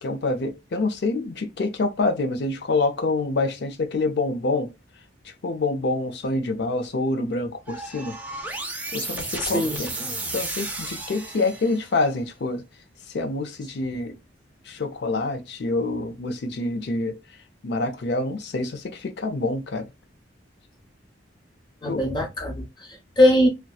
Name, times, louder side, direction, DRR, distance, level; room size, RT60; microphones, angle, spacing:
voice 1, 0.0-4.7 5.2-8.2 8.9-9.9 10.2-12.6 13.1-14.1 14.7-17.1 17.6-19.9 21.9-22.0, left 2 dB, 65° left, 0.5 m, -26 dB
sound 1, 7.7-12.0, right 2 dB, 10° right, 0.4 m, -33 dB
voice 2, 9.4-9.9 21.8-23.5, left 1 dB, 25° left, 0.9 m, -21 dB
2.6 x 2.2 x 2.2 m
head